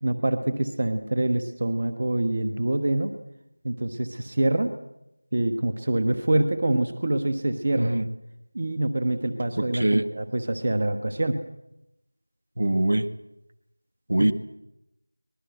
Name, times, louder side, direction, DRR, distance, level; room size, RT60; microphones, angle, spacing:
voice 1, 0.0-3.1 3.6-4.7 5.3-7.9 8.5-11.4 14.2-14.3, right 1 dB, 35° right, 8 dB, 1.4 m, -25 dB
voice 2, 12.6-13.1 14.1-14.3, right 1 dB, 55° right, 11 dB, 1.7 m, -22 dB
23.5 x 20.5 x 8.0 m, 0.89 s
figure-of-eight pair, 175°, 0 cm